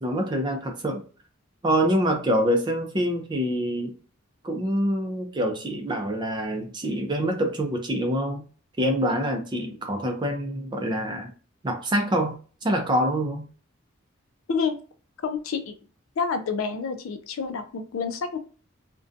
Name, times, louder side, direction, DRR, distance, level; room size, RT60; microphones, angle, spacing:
voice 1, 0.0-1.0 1.6-3.9 4.4-8.4 8.8-11.3 11.6-12.4 12.6-13.4, equal, 20° right, 3 dB, 0.4 m, -25 dB
voice 2, 15.2-15.7 16.2-18.4, left 5 dB, 75° left, 8 dB, 0.4 m, -28 dB
2.5 x 2.2 x 2.5 m, 0.39 s
head